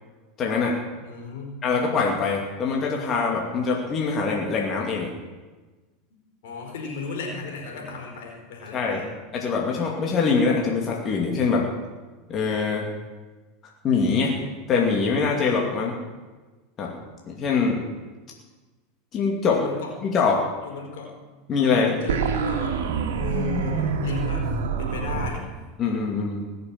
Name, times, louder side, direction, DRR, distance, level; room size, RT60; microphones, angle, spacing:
voice 1, 0.4-0.8 1.6-5.1 8.7-9.0 9.3-11.7 12.3-12.8 13.8-14.4 14.7-15.9 16.8-16.9 17.3-17.8 19.1-19.6 20.0-20.5 21.5-22.0 25.8-26.4, left 5 dB, 35° left, -1 dB, 2.5 m, -23 dB
voice 2, 1.0-1.6 6.4-9.2 19.5-19.9 20.6-21.2 21.6-22.8 23.1-24.5 24.8-25.5 26.4-26.5, left 4 dB, 75° left, 1 dB, 4.6 m, -35 dB
sound 1, 22.1-25.3, right 5 dB, 80° right, 1.6 m, -26 dB
19.5 x 6.9 x 7.5 m, 1.3 s
hypercardioid pair, 105°, 0 cm